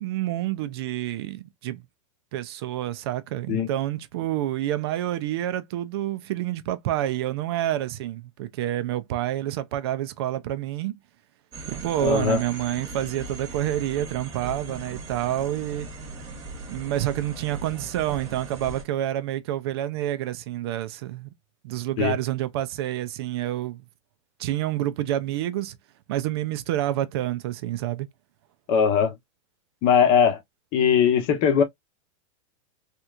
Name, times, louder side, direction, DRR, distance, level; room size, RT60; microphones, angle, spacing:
voice 1, 0.0-1.8 2.3-10.9 11.7-15.9 16.7-21.3 21.6-23.8 24.4-25.8 26.1-28.1, right 13 dB, 50° right, 0.5 m, -28 dB
sound 1, 11.5-18.8, right 3 dB, 20° right, 1.1 m, -38 dB
voice 2, 12.0-12.4 22.0-22.1 28.7-29.1 29.8-30.4 30.7-31.6, left 7 dB, 35° left, 0.9 m, -20 dB
3.3 x 2.9 x 2.4 m
supercardioid pair, 165°, 17 cm